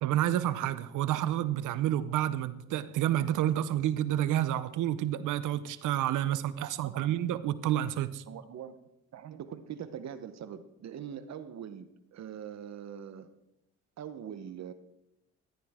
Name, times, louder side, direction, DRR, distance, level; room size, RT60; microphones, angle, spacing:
voice 1, 0.0-8.2, right 12 dB, 85° right, 15 dB, 0.7 m, -29 dB
voice 2, 6.6-7.4 8.3-8.7 9.1-13.3 14.0-14.7, right 8 dB, 60° right, 12 dB, 1.0 m, -43 dB
14.5 x 11.0 x 3.6 m, 0.90 s
cardioid pair, 90°, 30 cm